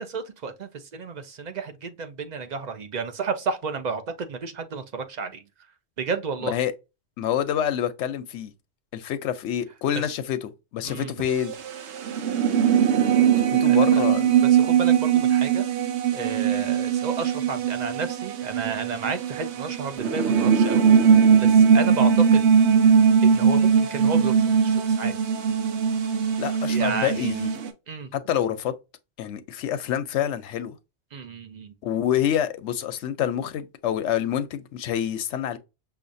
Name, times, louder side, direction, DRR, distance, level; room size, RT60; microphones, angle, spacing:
voice 1, 0.0-5.4 6.0-6.5 10.0-10.1 10.8-11.1 13.2-13.4 13.7-14.1 14.5-15.6 16.1-22.4 23.2-25.1 26.7-27.4 27.9-28.1 31.1-31.7, right 4 dB, 45° right, 0.7 m, -32 dB
voice 2, 7.2-8.5 8.9-11.5 13.3-14.3 26.4-27.5 28.1-28.7 29.2-30.7 31.8-35.6, left 10 dB, 90° left, 0.9 m, -27 dB
sound 1, 11.3-27.7, right 7 dB, 75° right, 1.0 m, -20 dB
5.7 x 2.4 x 2.5 m
omnidirectional pair, 1.2 m